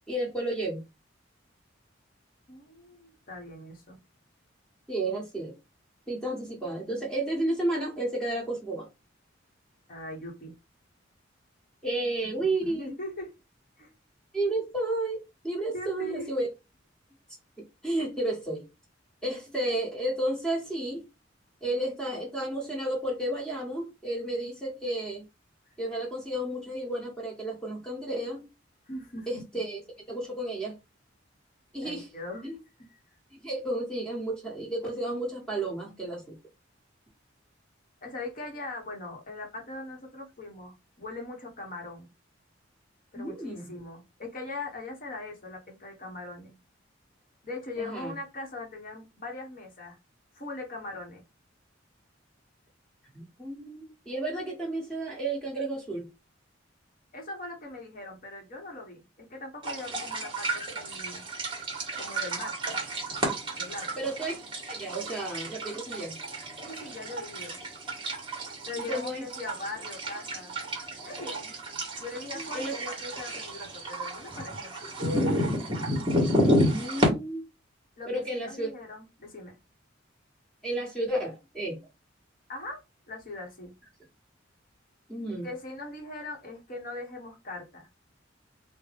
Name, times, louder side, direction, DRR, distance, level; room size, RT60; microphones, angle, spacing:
voice 1, 0.1-0.8 4.9-5.5 6.1-8.9 11.8-12.9 14.3-16.5 17.6-18.7 19.2-21.1 21.6-25.2 25.8-28.5 29.3-29.8 30.1-30.8 31.7-32.1 32.4-32.5 33.4-36.4 43.2-43.7 47.8-48.1 53.1-56.1 64.0-64.4 64.6-66.1 68.9-69.3 72.3-72.8 76.5-77.4 78.1-78.7 80.6-81.8 85.1-85.5, right 1 dB, 5° left, 1.4 m, -32 dB
voice 2, 2.5-4.0 9.9-10.5 12.4-13.3 13.8-13.9 15.7-16.3 28.9-29.6 31.8-32.6 38.0-42.1 43.1-46.6 47.4-50.0 50.3-51.3 57.1-59.0 59.3-61.2 62.0-62.8 63.5-64.0 66.6-67.6 68.7-70.6 71.0-71.5 72.0-74.7 78.0-79.6 82.5-82.8 83.1-83.7 85.4-87.9, left 2 dB, 45° left, 1.0 m, -40 dB
sound 1, 59.6-77.1, equal, 25° right, 1.2 m, -31 dB
3.9 x 2.2 x 3.3 m
head